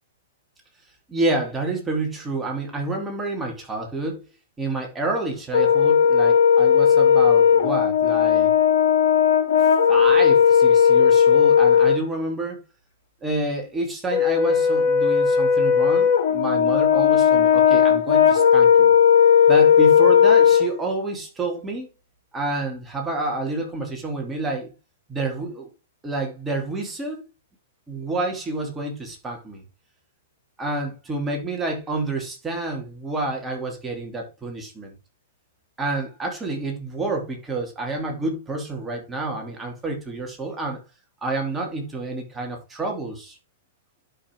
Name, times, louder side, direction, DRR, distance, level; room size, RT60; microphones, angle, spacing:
voice 1, 1.1-4.2 4.6-8.5 9.6-12.6 13.2-18.9 19.5-21.9 22.3-24.7 25.1-25.7 26.0-27.3 27.9-29.6 30.6-34.9 35.8-40.8 41.2-43.4, right 2 dB, 10° right, 2.9 m, -29 dB
Brass instrument, 5.5-12.0 14.1-20.7, left 7 dB, 70° left, 3.4 m, -16 dB
11.5 x 5.8 x 4.7 m
hypercardioid pair, 150°, 0 cm